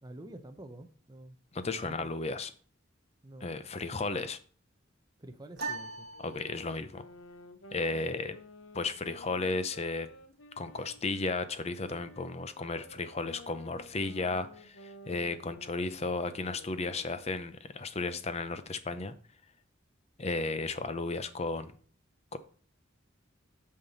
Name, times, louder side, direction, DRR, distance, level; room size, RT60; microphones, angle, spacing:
voice 1, 0.0-1.4 1.8-2.1 3.2-3.5 5.2-6.1, right 1 dB, 20° right, 6 dB, 0.7 m, -48 dB
voice 2, 1.5-2.5 3.4-4.4 6.2-7.0 7.7-8.4 8.7-10.1 10.6-19.1 20.2-21.7 22.3-22.4, left 3 dB, 30° left, 11 dB, 0.6 m, -34 dB
sound 1, 5.6-7.0, right 3 dB, 55° right, 1.8 m, -40 dB
sound 2, 6.1-11.4 11.8-17.5, left 1 dB, 75° left, 0.8 m, -52 dB
8.8 x 5.7 x 4.1 m, 0.44 s
head